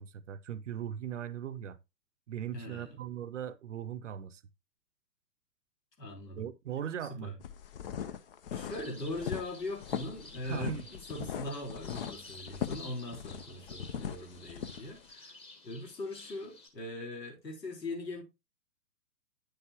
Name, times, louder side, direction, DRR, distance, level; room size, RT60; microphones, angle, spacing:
voice 1, 0.0-1.8 2.3-4.4 6.4-7.3 10.4-10.9 11.2-11.3, right 9 dB, 45° right, 0.7 m, -39 dB
voice 2, 2.5-3.0 6.0-6.4 7.1-7.3 8.5-15.3 15.6-18.2, left 1 dB, 75° left, 4.3 m, -41 dB
sound 1, 7.4-15.0, left 9 dB, 35° left, 0.7 m, -39 dB
sound 2, 8.5-16.7, left 3 dB, 10° left, 1.4 m, -53 dB
9.5 x 6.8 x 2.9 m
figure-of-eight pair, 125°, 50 cm